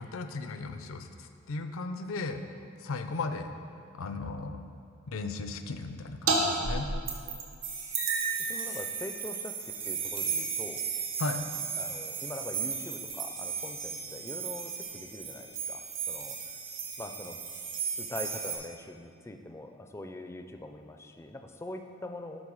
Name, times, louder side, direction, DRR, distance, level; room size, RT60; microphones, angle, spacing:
voice 1, 0.0-2.4 2.8-3.5 3.9-4.6 5.1-6.9 11.2-11.5, left 3 dB, 75° left, 8 dB, 0.5 m, -36 dB
sound 1, 6.3-6.4 6.6-7.5 7.9-13.0, right 4 dB, 75° right, 1.2 m, -34 dB
sound 2, 7.6-18.6, right 6 dB, 60° right, 1.4 m, -36 dB
voice 2, 8.4-10.8 11.8-16.6 17.0-17.4 18.0-22.4, left 1 dB, 10° left, 5 dB, 0.4 m, -43 dB
11.0 x 4.2 x 4.8 m, 2.4 s
head